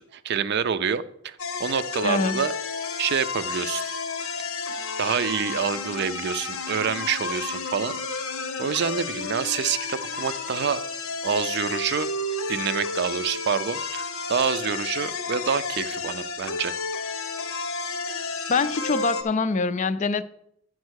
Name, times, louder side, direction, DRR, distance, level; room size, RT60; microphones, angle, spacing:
voice 1, 0.0-2.5 3.0-3.9 5.0-8.0 8.6-10.8 11.2-12.1 12.5-16.7, right 7 dB, 55° right, 0.4 m, -27 dB
sound 1, 1.4-19.2, left 4 dB, 90° left, 0.9 m, -31 dB
voice 2, 2.0-2.4 18.5-20.2, left 4 dB, 35° left, 0.4 m, -24 dB
9.6 x 4.4 x 6.3 m
head